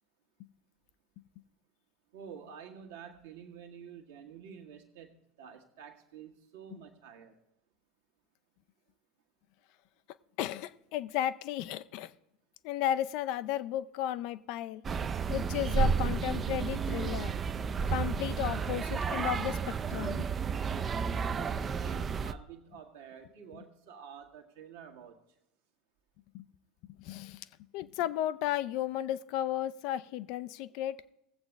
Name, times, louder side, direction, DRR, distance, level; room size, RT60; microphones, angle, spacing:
voice 1, 2.1-7.4 21.5-25.2, right 7 dB, 60° right, 1.5 m, -49 dB
voice 2, 10.4-12.1 12.6-14.8 15.3-17.3 17.9-20.3 26.3-26.5 27.0-27.5 27.7-31.0, left 12 dB, 50° left, 0.4 m, -34 dB
sound 1, 14.8-22.3, right 6 dB, 25° right, 0.4 m, -32 dB
19.0 x 7.8 x 3.3 m
figure-of-eight pair, 75°, 0 cm